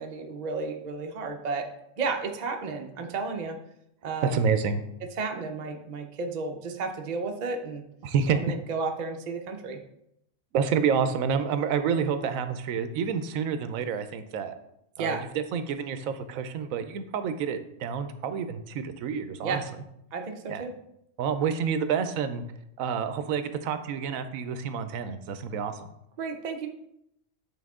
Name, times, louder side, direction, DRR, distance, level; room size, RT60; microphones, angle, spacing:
voice 1, 0.0-1.7 2.0-3.6 4.0-4.4 5.2-7.8 8.3-9.8 15.0-15.2 19.4-19.6 20.1-20.8 26.2-26.7, right 4 dB, 40° right, 3 dB, 0.6 m, -32 dB
voice 2, 4.2-4.8 8.0-8.6 10.5-14.5 15.0-19.6 20.5-20.6 21.2-22.4 22.8-25.8, right 6 dB, 85° right, 10 dB, 1.0 m, -28 dB
8.4 x 3.6 x 3.6 m, 0.78 s
omnidirectional pair, 1.4 m